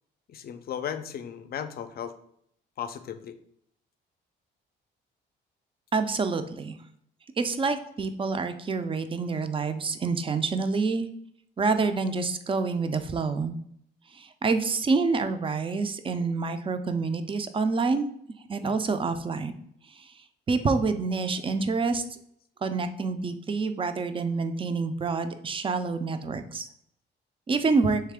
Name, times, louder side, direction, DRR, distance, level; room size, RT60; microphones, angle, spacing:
voice 1, 0.3-2.1 2.8-3.3, left 8 dB, 50° left, 11 dB, 0.4 m, -35 dB
voice 2, 5.9-6.8 7.4-11.1 11.6-13.6 14.1-18.1 18.5-19.5 19.9-20.1 20.5-22.0 22.6-26.7 27.5-28.0, right 4 dB, 25° right, 9 dB, 0.4 m, -27 dB
3.3 x 3.2 x 3.5 m, 0.69 s
cardioid pair, 90°, 20 cm